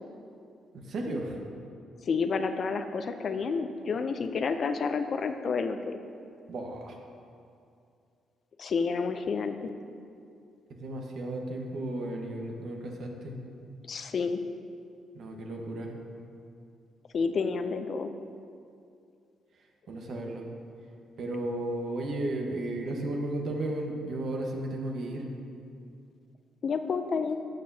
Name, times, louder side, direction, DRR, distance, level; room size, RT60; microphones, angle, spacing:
voice 1, 0.7-1.4 6.5-7.0 10.7-13.4 15.1-15.9 19.9-20.5 21.2-25.3, right 1 dB, 65° right, 1 dB, 1.3 m, -34 dB
voice 2, 2.1-6.0 8.6-9.7 13.9-14.4 17.1-18.1 26.6-27.3, left 5 dB, 50° left, 8 dB, 0.5 m, -30 dB
11.5 x 6.6 x 2.8 m, 2.4 s
cardioid pair, 90°, 0 cm